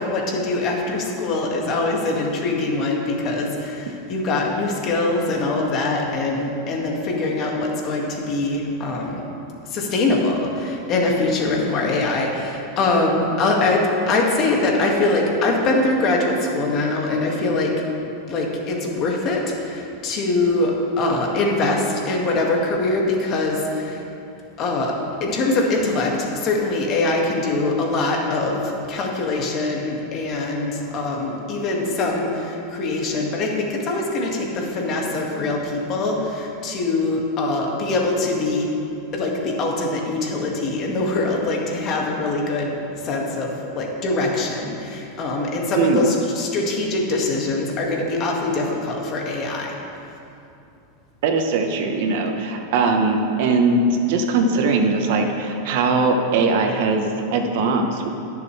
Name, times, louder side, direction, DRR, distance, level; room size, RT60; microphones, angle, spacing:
voice 1, 0.0-9.3 9.7-17.8 18.3-24.0 24.6-24.9 25.2-38.7 39.1-42.7 43.0-49.8, left 2 dB, 40° left, -1 dB, 2.0 m, -23 dB
voice 2, 45.8-46.1 51.2-58.1, right 3 dB, 65° right, 4 dB, 1.2 m, -20 dB
19.0 x 6.9 x 3.4 m, 2.7 s
supercardioid pair, 125°, 0 cm